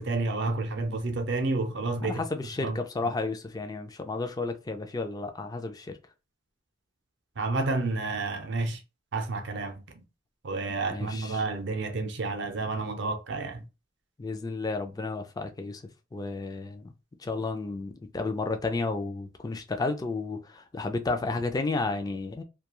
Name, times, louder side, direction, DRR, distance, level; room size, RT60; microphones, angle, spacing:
voice 1, 0.0-2.2 2.6-2.8 7.4-8.8 9.1-9.8 10.4-13.6, right 3 dB, 65° right, 0.6 m, -30 dB
voice 2, 2.0-6.0 10.9-11.4 14.2-15.8 16.1-16.9 17.2-22.4, left 3 dB, 20° left, 0.4 m, -32 dB
2.3 x 2.3 x 2.9 m
head